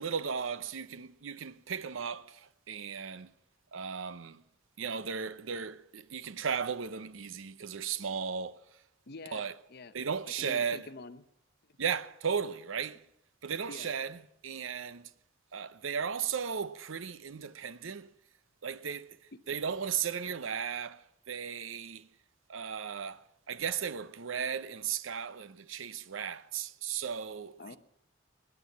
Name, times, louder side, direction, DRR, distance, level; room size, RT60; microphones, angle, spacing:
voice 1, 0.0-3.3 3.7-4.4 4.8-8.6 9.3-9.5 9.9-10.9 11.8-13.0 13.4-15.1 15.5-18.1 18.6-19.2 19.5-22.1 22.5-27.8, right 7 dB, 85° right, 0.7 m, -36 dB
voice 2, 9.1-10.1 10.4-11.2 11.7-11.8 13.7-13.9 27.6-27.8, left 3 dB, 55° left, 0.8 m, -47 dB
20.5 x 9.7 x 7.2 m
head